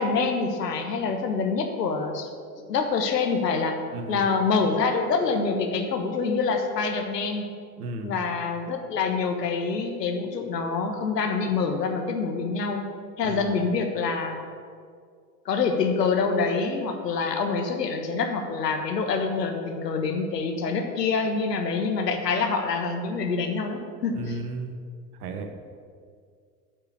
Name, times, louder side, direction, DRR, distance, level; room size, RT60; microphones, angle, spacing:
voice 1, 0.0-2.3 2.7-3.8 4.1-7.4 8.0-12.8 13.2-14.4 15.4-24.4, left 4 dB, 75° left, 5 dB, 1.3 m, -26 dB
voice 2, 3.9-4.2 7.8-8.1 13.2-13.5 24.1-24.8 25.2-25.6, right 2 dB, 65° right, 6 dB, 1.2 m, -34 dB
8.7 x 6.1 x 8.2 m, 2.1 s
figure-of-eight pair, 75°, 49 cm